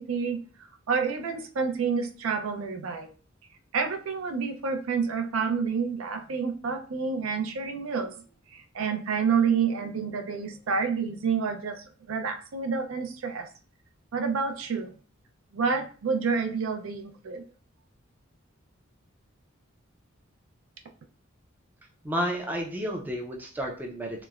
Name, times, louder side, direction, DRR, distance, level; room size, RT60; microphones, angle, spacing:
voice 1, 0.0-3.1 3.7-8.1 8.5-13.5 14.1-14.9 15.5-17.5, right 5 dB, 80° right, 5 dB, 0.4 m, -29 dB
voice 2, 22.0-24.2, equal, 10° right, 0 dB, 0.4 m, -31 dB
2.9 x 2.0 x 2.3 m, 0.39 s
head